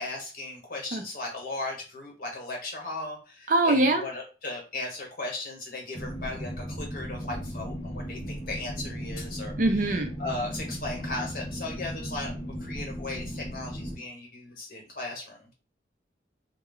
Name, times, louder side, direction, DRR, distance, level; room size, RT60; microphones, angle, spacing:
voice 1, 0.0-9.5 10.2-12.3 12.6-15.5, left 2 dB, 50° left, 0 dB, 1.1 m, -36 dB
voice 2, 3.5-4.0 9.6-10.1, right 2 dB, 50° right, 5 dB, 0.5 m, -22 dB
sound 1, 5.9-13.9, equal, 25° left, 0.6 m, -36 dB
2.2 x 2.2 x 3.6 m, 0.34 s
head